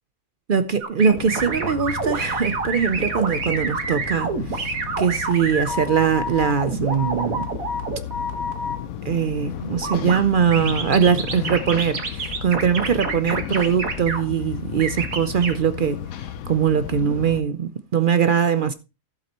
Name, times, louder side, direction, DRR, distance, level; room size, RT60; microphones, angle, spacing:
voice 1, 0.5-7.5 9.0-16.0 16.5-18.7, right 7 dB, 55° right, 0.6 m, -21 dB
sound 1, 0.8-8.8 9.8-10.2 10.5-14.2 14.8-15.5, right 3 dB, 85° right, 2.0 m, -27 dB
sound 2, 1.2-17.4, left 9 dB, 85° left, 1.1 m, -34 dB
14.5 x 7.8 x 3.0 m
omnidirectional pair, 1.4 m